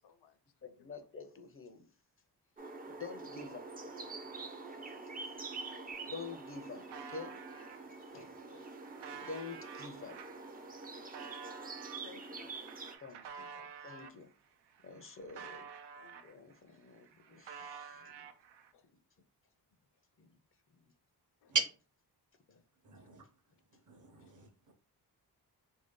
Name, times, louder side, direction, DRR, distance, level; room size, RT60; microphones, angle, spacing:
voice 1, 0.0-1.0 3.8-4.3 5.7-5.9 12.0-13.0 15.9-16.5 17.3-17.4 18.7-18.9 21.4-21.5 24.2-24.3, left 7 dB, 75° left, 0.6 m, -61 dB
voice 2, 0.6-1.9 2.9-3.6 4.6-5.4 5.9-8.8 9.1-10.2 13.0-14.3 14.8-15.7 16.2-18.3 20.2-20.4 20.7-20.9 22.5-22.6 23.1-23.3, left 4 dB, 35° left, 0.5 m, -49 dB
sound 1, 2.6-13.0, right 3 dB, 20° right, 0.4 m, -46 dB
sound 2, 5.9-6.0 6.2-7.8 8.4-14.2 14.7-16.6 16.9-18.7, right 6 dB, 85° right, 0.6 m, -50 dB
voice 3, 22.8-23.3 23.7-24.7, right 4 dB, 45° right, 0.8 m, -37 dB
3.1 x 2.7 x 3.6 m
cardioid pair, 115°, 41 cm